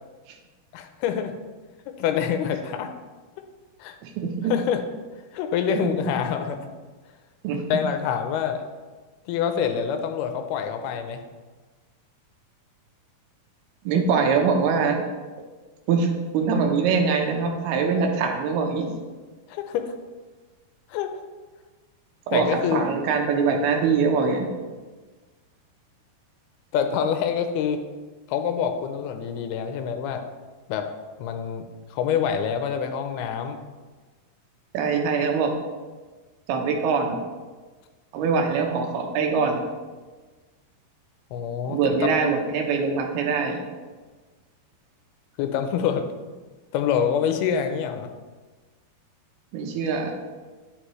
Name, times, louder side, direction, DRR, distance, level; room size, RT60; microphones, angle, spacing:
voice 1, 0.7-1.3 1.9-2.9 3.8-3.9 4.5-4.8 5.3-6.6 7.7-8.6 9.3-11.2 19.5-19.9 20.9-21.1 22.3-22.9 26.7-27.8 28.3-30.2 30.7-30.9 31.2-33.6 41.3-42.1 45.4-46.1 46.7-48.1, left 8 dB, 85° left, 7 dB, 2.5 m, -26 dB
voice 2, 4.0-4.5 7.4-7.6 13.9-15.0 15.9-18.9 22.3-24.5 34.7-35.6 36.5-37.2 38.1-39.6 41.6-43.6 49.5-50.1, right 5 dB, 80° right, 3 dB, 2.8 m, -23 dB
10.0 x 7.6 x 3.1 m, 1.3 s
omnidirectional pair, 4.6 m